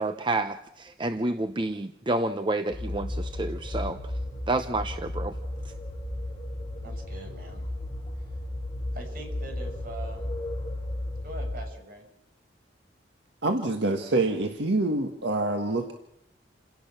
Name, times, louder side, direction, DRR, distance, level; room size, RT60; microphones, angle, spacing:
voice 1, 0.0-4.0 4.5-5.4, right 2 dB, 25° right, 9 dB, 0.8 m, -29 dB
sound 1, 2.7-11.5, left 1 dB, 25° left, 7.2 m, -34 dB
voice 2, 6.8-7.6 8.2-8.4 8.9-10.4 11.2-12.1, right 2 dB, 50° right, 3 dB, 6.8 m, -43 dB
voice 3, 13.4-15.9, right 2 dB, 70° right, 4 dB, 1.8 m, -26 dB
29.0 x 18.0 x 6.1 m, 0.78 s
head